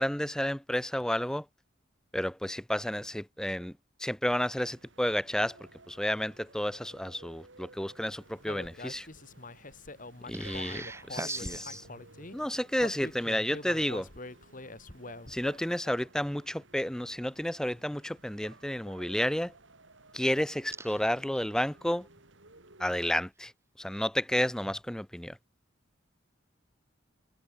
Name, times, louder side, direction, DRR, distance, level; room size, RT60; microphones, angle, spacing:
voice 1, 0.0-1.4 2.1-3.7 4.0-5.6 5.9-9.1 10.3-10.8 11.1-11.2 12.3-14.1 15.3-19.5 20.1-22.1 22.8-23.5 23.8-25.4, equal, 5° left, 0.5 m, -31 dB
sound 1, 4.3-23.2, right 2 dB, 75° right, 6.4 m, -56 dB
Human voice, 8.5-12.3 12.8-15.5, left 2 dB, 45° left, 2.9 m, -44 dB
voice 2, 10.3-11.8 20.8-21.0, right 3 dB, 15° right, 1.2 m, -40 dB
head